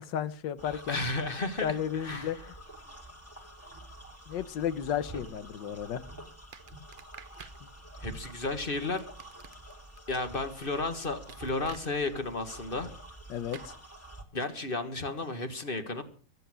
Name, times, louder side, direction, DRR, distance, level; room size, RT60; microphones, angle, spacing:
voice 1, 0.0-1.0 1.6-2.4 4.3-6.0 13.3-13.7, left 9 dB, 85° left, 15 dB, 1.7 m, -33 dB
voice 2, 0.6-2.4 8.0-9.0 10.1-12.9 14.3-16.0, left 3 dB, 30° left, 9 dB, 1.8 m, -33 dB
sound 1, 0.6-14.2, right 1 dB, 10° left, 2.3 m, -48 dB
sound 2, 6.5-7.6 9.0-10.0 11.3-11.9 13.5-13.7, right 7 dB, 50° right, 0.6 m, -49 dB
23.0 x 8.0 x 6.3 m, 0.41 s
omnidirectional pair, 1.9 m